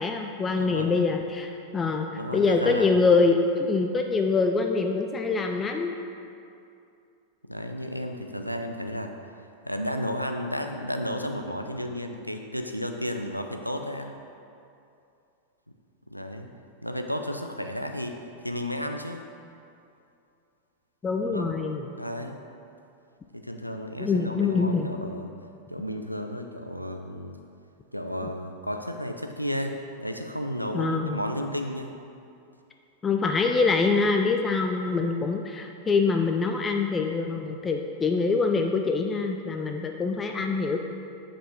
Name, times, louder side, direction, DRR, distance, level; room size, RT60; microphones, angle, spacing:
voice 1, 0.0-5.9 21.0-21.8 24.0-24.9 30.7-31.2 33.0-40.8, left 4 dB, 20° left, 4 dB, 0.3 m, -25 dB
voice 2, 0.5-0.9 2.1-2.9 7.5-9.1 9.6-14.1 16.1-16.5 16.8-18.2 18.4-19.3 21.2-21.5 21.9-22.4 23.3-25.3 25.7-27.4 27.9-31.9, equal, 90° left, 5 dB, 0.4 m, -33 dB
7.0 x 5.0 x 3.5 m, 2.6 s
figure-of-eight pair, 90°, 0 cm